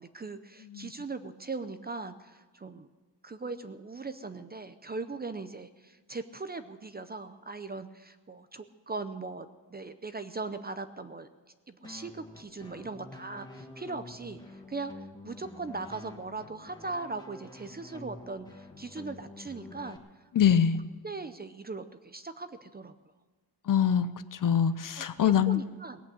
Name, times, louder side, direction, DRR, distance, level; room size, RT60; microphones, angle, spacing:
voice 1, 0.0-2.9 3.2-11.3 11.7-20.0 20.5-20.6 21.0-22.9 25.0-26.0, right 3 dB, 20° right, 10 dB, 0.5 m, -39 dB
sound 1, 11.8-20.0, left 1 dB, 10° left, 1.4 m, -48 dB
voice 2, 20.3-20.8 23.7-25.6, left 8 dB, 45° left, 12 dB, 0.7 m, -24 dB
18.5 x 8.4 x 7.8 m, 1.4 s
wide cardioid pair, 155°, 46 cm